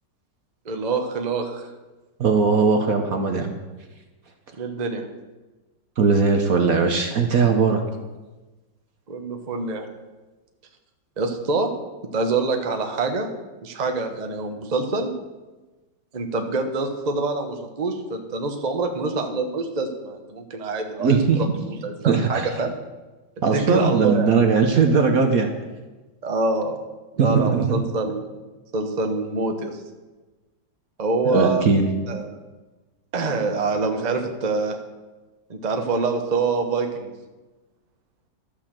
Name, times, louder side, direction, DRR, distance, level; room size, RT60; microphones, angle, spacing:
voice 1, 0.6-1.7 4.6-5.0 9.1-9.9 11.2-11.7 12.1-13.3 13.6-15.1 16.1-22.8 23.5-24.3 26.2-26.8 27.2-28.4 28.7-29.8 31.0-31.7 32.1-32.4 33.1-34.8 35.5-37.1, right 3 dB, 30° right, 4 dB, 0.9 m, -25 dB
voice 2, 2.2-3.5 6.0-7.8 21.0-21.4 22.0-22.5 23.4-25.5 27.2-27.8 31.2-31.9, right 5 dB, 55° right, 5 dB, 1.2 m, -19 dB
12.5 x 6.8 x 7.5 m, 1.2 s
omnidirectional pair, 2.1 m